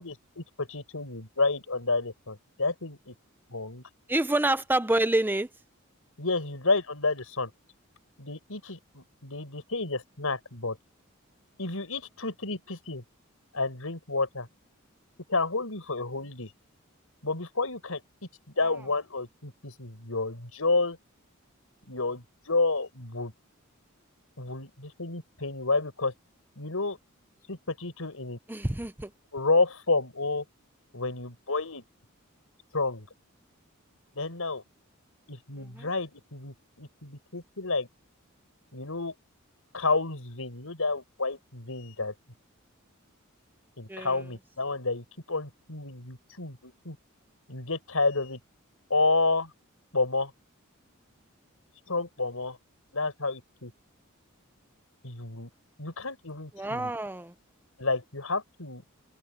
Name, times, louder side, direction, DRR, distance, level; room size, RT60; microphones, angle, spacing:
voice 1, 0.0-3.1 3.5-3.8 6.2-7.5 8.2-10.8 11.6-13.0 13.5-14.5 15.3-16.5 17.2-18.0 18.6-21.0 21.9-23.3 24.4-26.1 26.6-27.0 27.5-28.4 29.3-30.4 30.9-31.8 32.7-33.1 34.1-34.6 35.3-37.9 38.7-39.1 39.7-42.1 43.8-47.0 47.5-48.4 48.9-49.5 49.9-50.3 51.9-52.6 52.9-53.7 55.0-55.5 55.8-56.9 57.8-58.8, left 3 dB, 85° left, 5.0 m, -30 dB
voice 2, 4.1-5.5 28.5-29.1 35.8-35.9 43.9-44.2 56.5-57.3, right 1 dB, 10° right, 0.7 m, -27 dB
head